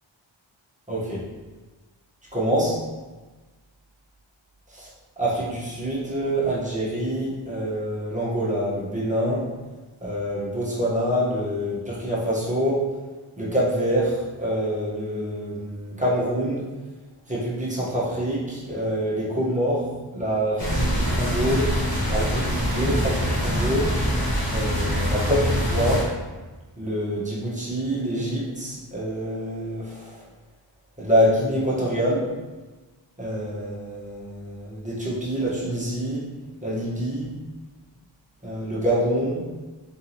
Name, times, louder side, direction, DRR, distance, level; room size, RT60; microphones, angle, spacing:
voice 1, 0.9-1.2 2.3-2.8 4.7-4.9 5.2-9.4 10.0-12.9 13.4-16.6 17.3-19.9 20.1-21.7 22.1-23.9 24.5-26.1 26.8-30.2 31.0-32.3 33.2-36.3 36.6-37.3 38.4-39.4, equal, 15° right, -7 dB, 1.3 m, -26 dB
sound 1, 20.6-26.0, equal, 45° left, 1.4 m, -24 dB
3.9 x 3.6 x 3.0 m, 1.2 s
wide cardioid pair, 60°, 49 cm